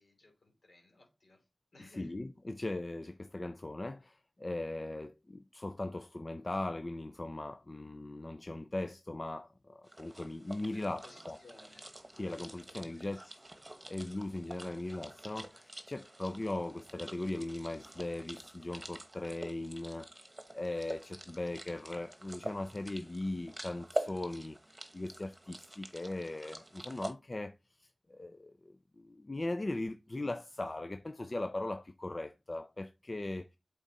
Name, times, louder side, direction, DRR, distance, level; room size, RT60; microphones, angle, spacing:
voice 1, 0.0-1.4 1.7-2.1 10.6-11.8 12.1-13.2, left 2 dB, 65° left, 2.9 m, -60 dB
voice 2, 1.8-11.4 12.1-20.1 20.5-24.6 24.9-27.5 27.8-33.5, left 2 dB, 35° left, 0.4 m, -39 dB
sound 1, 9.9-27.1, right 1 dB, 25° right, 1.1 m, -46 dB
8.0 x 3.7 x 4.0 m
wide cardioid pair, 75°, 0 cm